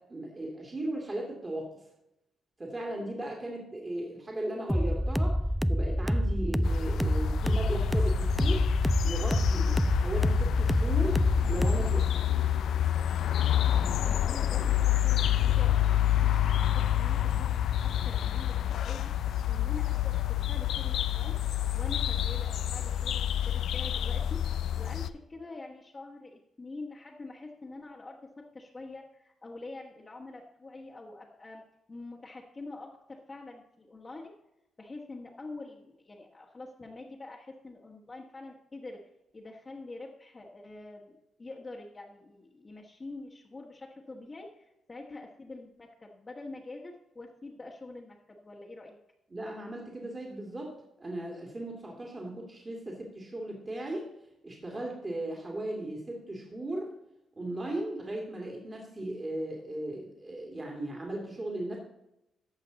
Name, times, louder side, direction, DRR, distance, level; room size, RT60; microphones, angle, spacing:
voice 1, 0.0-1.8 2.6-5.4 5.7-8.6 9.0-11.2 11.5-12.3 49.3-50.7 51.0-54.1 54.4-56.9 57.4-61.8, right 1 dB, 30° right, -1 dB, 2.5 m, -37 dB
sound 1, 4.7-12.1, equal, ahead, 0.3 m, -27 dB
sound 2, 6.6-25.1, left 11 dB, 75° left, 0.4 m, -28 dB
voice 2, 14.0-17.7 18.0-21.4 21.7-31.6 31.9-34.3 34.8-39.0 39.3-49.0, left 2 dB, 30° left, -4 dB, 1.5 m, -45 dB
15.0 x 5.7 x 4.0 m, 0.86 s
supercardioid pair, 65°, 0 cm